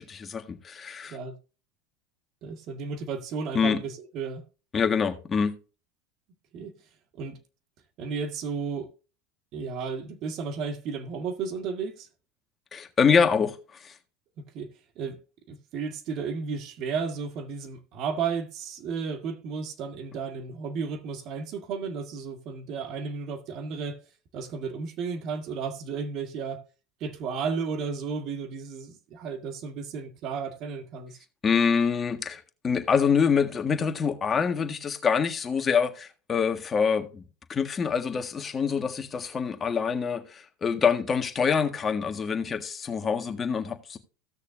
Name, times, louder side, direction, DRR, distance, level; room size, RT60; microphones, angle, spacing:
voice 1, 0.0-1.2 3.5-3.8 4.7-5.6 12.7-13.6 13.8-13.9 31.4-37.2 37.5-44.0, left 6 dB, 25° left, 1.6 m, -25 dB
voice 2, 2.4-4.4 6.5-6.8 7.1-7.4 8.0-8.9 9.5-12.1 14.4-15.2 15.5-24.0 24.3-26.6 27.0-31.2, right 5 dB, 50° right, 1.8 m, -33 dB
16.5 x 6.5 x 2.6 m
hypercardioid pair, 100°, 0 cm